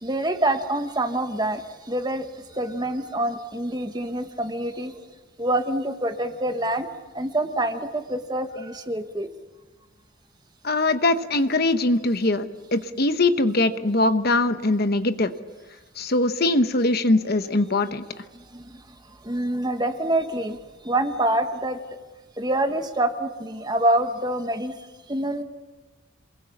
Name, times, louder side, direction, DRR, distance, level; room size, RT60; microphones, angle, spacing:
voice 1, 0.0-5.1 5.4-6.9 7.1-9.3 18.3-18.8 19.2-20.6 20.8-21.8 22.4-24.8 25.1-25.4, right 1 dB, 20° right, 7 dB, 1.3 m, -26 dB
voice 2, 10.6-12.4 12.7-15.3 16.0-18.0, left 2 dB, 50° left, 9 dB, 1.0 m, -21 dB
27.5 x 21.0 x 7.2 m, 1.2 s
head